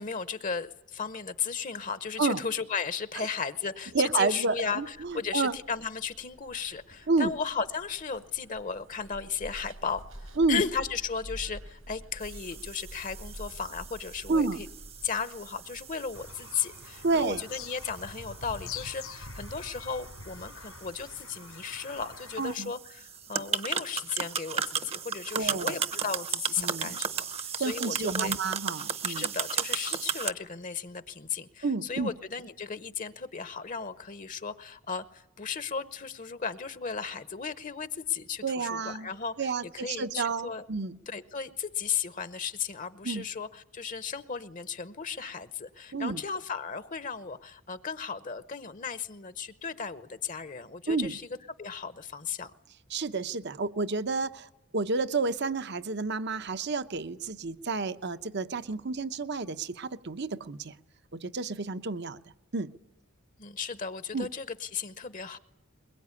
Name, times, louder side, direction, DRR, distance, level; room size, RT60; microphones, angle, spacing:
voice 1, 0.0-14.7 15.0-28.3 29.1-40.6 41.1-51.2 51.6-52.5 63.4-65.4, left 6 dB, 40° left, 13 dB, 0.9 m, -35 dB
voice 2, 3.9-5.6 7.1-7.3 10.4-10.6 14.3-14.6 17.0-17.4 22.4-22.7 25.3-25.7 26.6-27.0 27.6-29.3 31.6-32.1 38.4-39.1 39.4-41.0 43.0-43.2 45.9-46.2 50.9-51.1 52.9-60.7 61.1-62.2 62.5-62.7 64.1-64.3, right 4 dB, 55° right, 13 dB, 0.9 m, -30 dB
Zipper (clothing), 4.6-16.3, right 1 dB, 80° right, 4.9 m, -48 dB
sound 1, 12.2-30.3, right 6 dB, 30° right, 0.9 m, -36 dB
Bird vocalization bird call bird song, 16.1-22.6, left 5 dB, 85° left, 3.3 m, -45 dB
22.0 x 22.0 x 9.7 m, 0.89 s
head